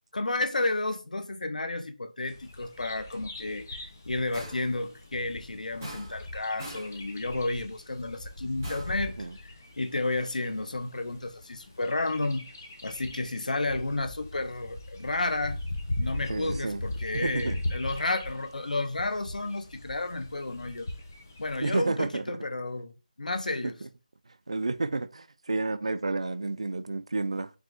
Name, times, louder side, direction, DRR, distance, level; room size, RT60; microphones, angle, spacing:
voice 1, 0.1-9.5 9.8-12.5 12.8-15.6 16.0-20.9 21.4-22.9 23.2-23.8, left 2 dB, 65° left, 0.8 m, -32 dB
Bird vocalization bird call bird song, 2.3-21.7, left 1 dB, 20° left, 0.5 m, -40 dB
sound 1, 4.3-4.8 5.8-6.3 6.6-7.0 8.6-9.1, right 1 dB, 10° right, 1.5 m, -42 dB
voice 2, 16.3-16.8 17.1-17.6 21.6-22.2 23.6-23.7 24.5-27.5, right 3 dB, 45° right, 0.3 m, -30 dB
4.8 x 2.4 x 3.7 m
figure-of-eight pair, 180°, 5 cm